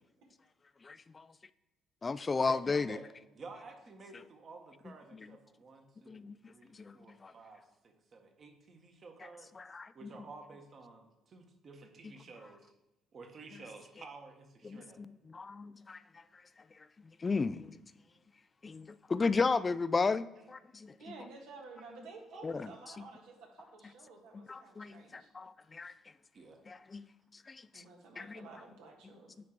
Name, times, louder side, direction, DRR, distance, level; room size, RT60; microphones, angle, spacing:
voice 1, 0.8-1.3 2.0-3.0 5.1-5.3 6.1-6.5 6.8-7.0 7.2-7.3 9.6-10.1 14.6-16.0 17.2-17.8 18.6-20.9 22.4-22.7 23.0-23.1 24.3-25.9 26.7-27.1 27.5-27.8 28.2-28.5, left 4 dB, 30° left, 0.3 m, -34 dB
voice 2, 2.3-3.1 3.3-9.5 9.9-12.7 13.1-15.0 19.3-19.4 21.8-21.9 22.3-22.5 26.3-26.6, right 3 dB, 50° right, 1.5 m, -52 dB
voice 3, 21.0-25.3 27.7-29.3, right 3 dB, 80° right, 1.8 m, -52 dB
9.4 x 3.7 x 4.6 m
supercardioid pair, 70°, 0 cm